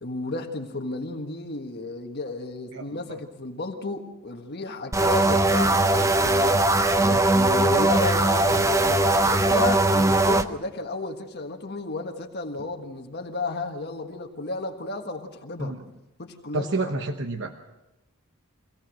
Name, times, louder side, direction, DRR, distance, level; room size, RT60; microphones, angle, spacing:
voice 1, 0.0-15.7 16.2-16.9, left 3 dB, 45° left, 3 dB, 1.5 m, -32 dB
sound 1, 4.9-10.5, right 2 dB, 15° right, 0.6 m, -20 dB
voice 2, 6.8-7.2 15.6-15.8 16.5-17.6, right 2 dB, 55° right, 5 dB, 1.0 m, -30 dB
25.0 x 17.5 x 6.4 m, 1.0 s
head